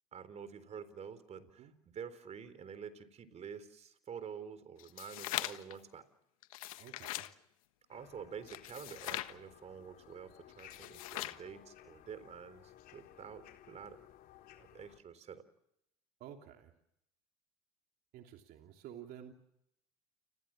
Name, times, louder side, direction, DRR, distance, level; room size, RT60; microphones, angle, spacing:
voice 1, 0.1-6.0 7.9-14.0 14.6-15.4, right 7 dB, 40° right, 13 dB, 4.0 m, -48 dB
sound 1, 4.8-5.8 6.4-7.3 8.5-9.3 10.6-11.4, left 16 dB, 90° left, 1.4 m, -41 dB
voice 2, 6.8-7.3 16.2-16.7 18.1-19.3, right 10 dB, 60° right, 4 dB, 3.1 m, -51 dB
sound 2, 7.9-15.0, left 12 dB, 60° left, 4.0 m, -58 dB
30.0 x 21.0 x 7.5 m, 0.78 s
supercardioid pair, 90°, 17 cm